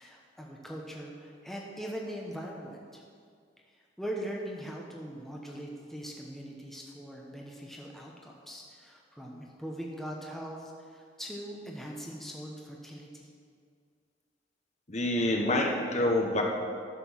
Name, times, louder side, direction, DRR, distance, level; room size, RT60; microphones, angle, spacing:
voice 1, 0.0-3.0 3.7-13.3, equal, ahead, -2 dB, 1.0 m, -41 dB
voice 2, 14.9-16.4, left 1 dB, 35° left, 1 dB, 1.1 m, -27 dB
11.5 x 6.9 x 7.1 m, 2.2 s
head